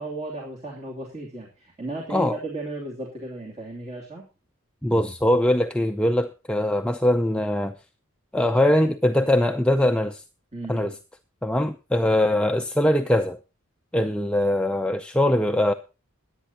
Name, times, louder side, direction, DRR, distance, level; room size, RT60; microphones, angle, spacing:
voice 1, 0.0-4.2 10.5-11.0, right 2 dB, 30° right, 2.8 m, -35 dB
voice 2, 4.8-7.7 8.3-10.2 10.7-10.9 11.4-13.4 13.9-15.7, left 1 dB, 5° left, 0.5 m, -22 dB
22.0 x 8.8 x 2.9 m
head